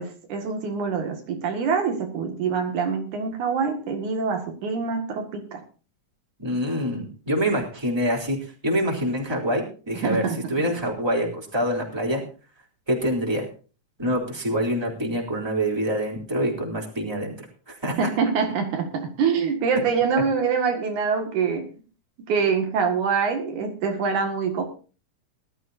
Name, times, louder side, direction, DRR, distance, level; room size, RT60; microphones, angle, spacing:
voice 1, 0.0-5.6 10.0-10.4 18.0-21.7 22.3-24.6, right 5 dB, 80° right, 4 dB, 3.3 m, -25 dB
voice 2, 6.4-8.4 8.6-10.2 10.5-12.2 12.9-13.5 14.0-18.0, equal, 10° right, 0 dB, 3.2 m, -26 dB
20.0 x 12.5 x 2.6 m, 0.36 s
omnidirectional pair, 3.4 m